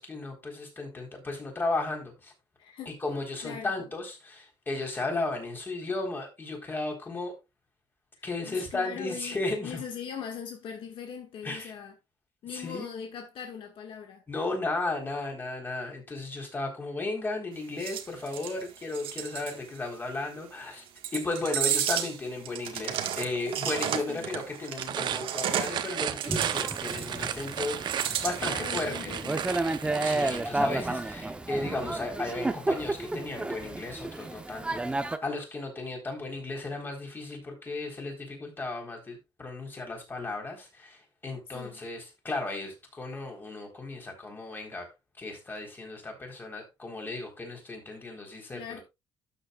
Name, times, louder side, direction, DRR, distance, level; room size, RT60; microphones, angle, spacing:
voice 1, 0.0-2.3 2.9-7.4 8.2-9.8 11.4-11.7 12.5-12.9 14.3-20.8 21.1-29.1 30.0-44.9 45.2-48.8, left 2 dB, 20° left, 4.1 m, -35 dB
voice 2, 2.6-3.0 3.4-3.7 8.2-9.4 9.6-11.9 12.4-14.2 24.1-24.3 28.4-29.5 41.5-41.8 48.5-48.8, left 7 dB, 65° left, 1.8 m, -40 dB
sound 1, 17.8-19.5 21.0-22.2 22.5-25.9 26.2-27.4 27.9-28.8, right 10 dB, 70° right, 1.6 m, -32 dB
sound 2, 24.7-30.5, right 9 dB, 50° right, 0.8 m, -34 dB
Thunder / Rain, 26.3-35.2, right 2 dB, 10° right, 0.9 m, -32 dB
12.5 x 7.7 x 2.4 m
cardioid pair, 140°, 9 cm